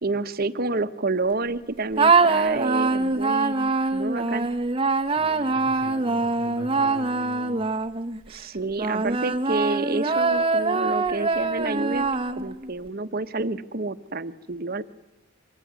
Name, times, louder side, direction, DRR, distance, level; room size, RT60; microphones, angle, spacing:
voice 1, 0.0-4.5 8.3-12.1 12.4-14.8, right 3 dB, 45° right, 11 dB, 1.1 m, -29 dB
sound 1, 2.0-8.2 8.8-12.7, right 3 dB, 25° right, 0.9 m, -23 dB
voice 2, 5.2-7.5, left 1 dB, 85° left, 3 dB, 6.7 m, -40 dB
25.0 x 20.5 x 9.6 m, 0.94 s
head